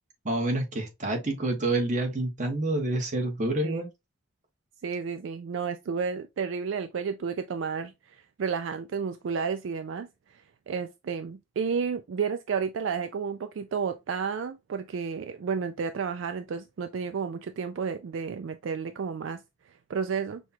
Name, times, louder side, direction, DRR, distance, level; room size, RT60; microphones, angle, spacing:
voice 1, 0.2-3.8, right 2 dB, 40° right, 1.2 m, -28 dB
voice 2, 4.8-10.1 10.7-19.4 19.9-20.4, right 6 dB, 70° right, 0.4 m, -31 dB
6.1 x 2.4 x 2.8 m
head